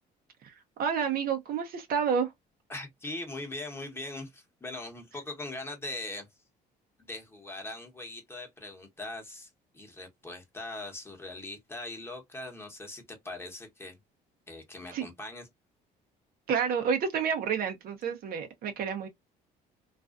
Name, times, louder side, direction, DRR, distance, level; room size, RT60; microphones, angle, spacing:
voice 1, 0.8-2.3 14.9-15.0 16.5-19.1, right 7 dB, 60° right, 0.7 m, -29 dB
voice 2, 2.7-6.3 7.1-14.0 14.5-15.5, left 2 dB, 15° left, 0.9 m, -41 dB
2.4 x 2.3 x 2.4 m
cardioid pair, 110°, 17 cm